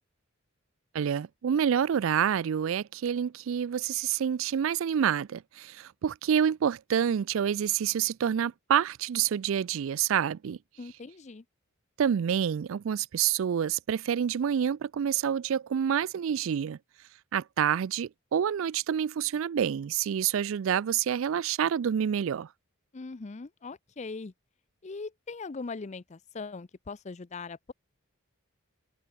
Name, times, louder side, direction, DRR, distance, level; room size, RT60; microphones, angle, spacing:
voice 1, 0.9-10.6 12.0-16.8 17.3-22.5, right 8 dB, 65° right, 0.3 m, -28 dB
voice 2, 10.8-11.4 22.9-24.3 24.8-27.7, left 4 dB, 35° left, 0.5 m, -40 dB
open air
head